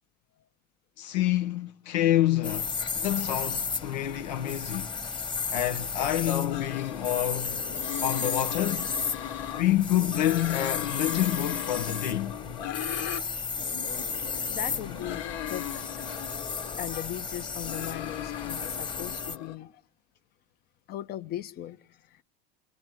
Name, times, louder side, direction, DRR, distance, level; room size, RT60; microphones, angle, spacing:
voice 1, 1.0-4.9 5.5-7.6 8.0-8.9 9.6-12.4, left 13 dB, 80° left, 1.2 m, -27 dB
sound 1, 2.4-19.4, left 5 dB, 20° left, 1.7 m, -34 dB
sound 2, 6.5-9.7 10.0-13.2 13.6-16.9 17.4-19.6, left 11 dB, 65° left, 1.8 m, -38 dB
voice 2, 14.5-15.9 16.8-19.8 20.9-22.2, left 12 dB, 45° left, 1.2 m, -38 dB
28.5 x 22.0 x 9.3 m
hypercardioid pair, 100°, 21 cm